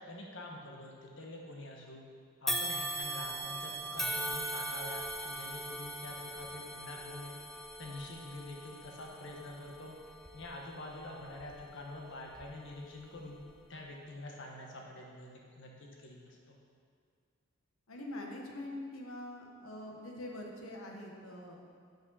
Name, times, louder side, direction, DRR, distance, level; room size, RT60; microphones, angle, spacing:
voice 1, 0.0-2.0 2.4-7.4 7.8-10.0 10.3-13.4 13.7-16.6, left 1 dB, 60° left, -1 dB, 1.1 m, -46 dB
sound 1, 2.5-11.8 12.3-12.5 13.4-13.5, right 1 dB, ahead, 0.3 m, -40 dB
voice 2, 17.9-21.6, left 1 dB, 90° left, 1 dB, 1.0 m, -44 dB
6.1 x 5.1 x 5.4 m, 2.1 s
head